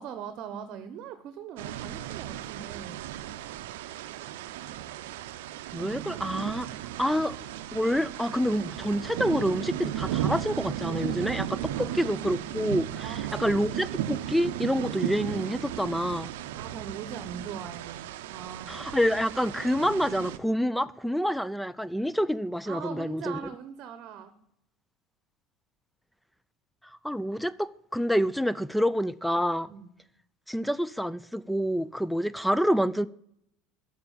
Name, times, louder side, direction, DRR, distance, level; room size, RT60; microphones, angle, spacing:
voice 1, 0.0-3.1 11.7-12.1 13.0-13.6 16.5-18.8 22.7-24.3 29.7-29.9, right 8 dB, 55° right, 0.8 m, -41 dB
sound 1, 1.6-20.4, right 12 dB, 80° right, 0.5 m, -35 dB
voice 2, 5.7-6.7 7.0-7.4 7.7-16.3 18.7-23.4 27.0-29.7 30.5-33.1, equal, ahead, 0.3 m, -27 dB
6.9 x 6.4 x 7.0 m
supercardioid pair, 95°, 0 cm